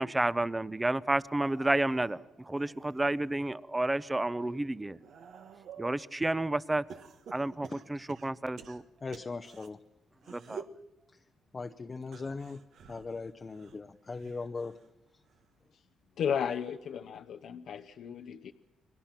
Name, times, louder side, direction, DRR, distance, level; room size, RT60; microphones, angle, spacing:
voice 1, 0.0-5.0 5.8-6.8 7.3-8.8 10.3-10.7, right 2 dB, 15° right, 18 dB, 0.7 m, -31 dB
sound 1, 1.2-3.6 4.1-6.0 6.9-9.7 10.2-10.8 12.0-14.9 15.2-15.7 16.8-16.9, right 6 dB, 70° right, 1.6 m, -51 dB
voice 2, 9.0-9.8 10.2-10.3 11.5-14.8, left 4 dB, 30° left, 7 dB, 0.8 m, -39 dB
voice 3, 16.2-18.5, left 8 dB, 65° left, 6 dB, 0.8 m, -34 dB
29.0 x 22.5 x 6.0 m, 0.94 s
cardioid pair, 90°, 0 cm